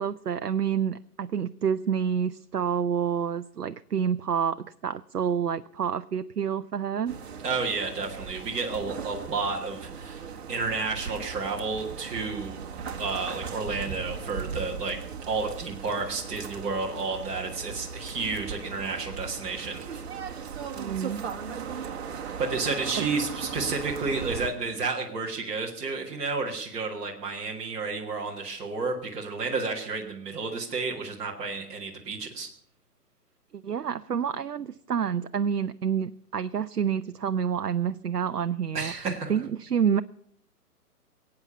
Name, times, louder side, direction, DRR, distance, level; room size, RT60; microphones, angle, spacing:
voice 1, 0.0-7.2 20.8-21.2 23.0-23.1 33.6-38.9 39.3-40.0, right 7 dB, 80° right, 12 dB, 0.6 m, -28 dB
sound 1, 7.1-24.5, right 6 dB, 45° right, 1.5 m, -38 dB
voice 2, 7.4-12.6 13.0-15.0 15.3-20.0 21.7-21.9 22.4-32.5 38.7-39.3, right 4 dB, 15° right, -3 dB, 1.6 m, -31 dB
21.5 x 8.8 x 6.9 m, 0.66 s
figure-of-eight pair, 130°, 46 cm